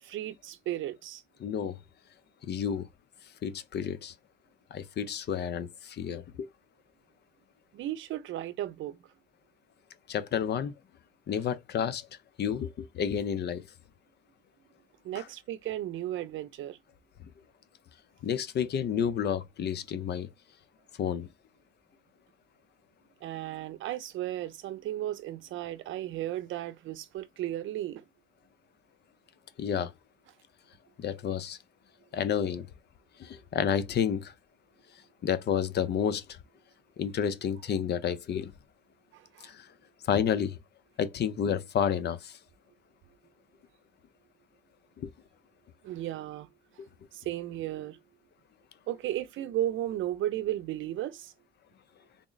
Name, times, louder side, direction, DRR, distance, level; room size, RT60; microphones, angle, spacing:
voice 1, 0.0-1.2 7.7-9.0 15.0-16.8 23.2-28.0 39.1-39.5 45.8-46.5 47.1-48.0 48.9-51.3, right 13 dB, 75° right, 0.5 m, -35 dB
voice 2, 1.4-1.8 2.4-2.9 3.4-4.1 4.7-6.5 10.1-10.7 11.3-12.1 12.4-13.6 15.2-15.3 18.2-20.3 21.0-21.3 29.6-29.9 31.0-31.6 32.1-32.7 33.2-34.3 35.2-36.2 37.0-38.5 39.4-39.7 40.0-40.6 41.0-42.4 45.0-45.1 46.8-46.9, left 8 dB, 60° left, 0.6 m, -30 dB
3.5 x 2.0 x 3.9 m
cardioid pair, 90°, 20 cm